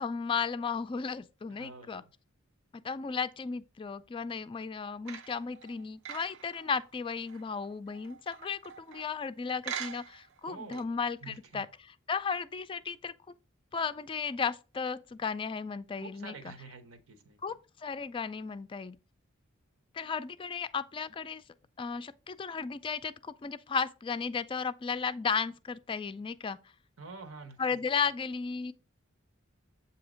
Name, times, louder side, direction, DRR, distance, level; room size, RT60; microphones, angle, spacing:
voice 1, 0.0-2.0 2.7-11.7 12.1-13.1 13.7-16.5 17.4-19.0 19.9-21.4 21.8-26.6 27.6-28.7, left 5 dB, 25° left, 0.3 m, -34 dB
voice 2, 1.5-2.1 10.5-11.6 16.0-17.4 27.0-27.9, right 4 dB, 85° right, 1.1 m, -48 dB
sound 1, 5.1-9.2 9.6-10.4 10.7-10.8, right 8 dB, 60° right, 0.6 m, -44 dB
7.9 x 2.8 x 5.0 m
head